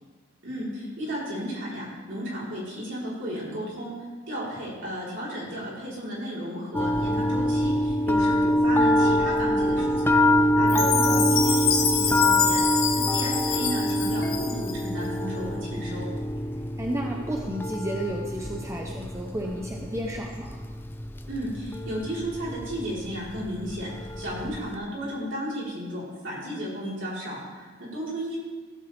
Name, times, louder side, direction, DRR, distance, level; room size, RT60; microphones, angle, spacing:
voice 1, 0.4-3.9 4.3-16.1 21.3-23.9 24.2-28.4, equal, 65° right, -6 dB, 3.8 m, -34 dB
sound 1, 6.7-24.7, left 1 dB, 10° left, 0.3 m, -25 dB
Chime, 10.7-14.9, left 6 dB, 85° left, 1.7 m, -26 dB
voice 2, 10.7-11.3 16.8-20.6, equal, 15° right, 0 dB, 0.7 m, -32 dB
15.0 x 7.7 x 3.3 m, 1.4 s
head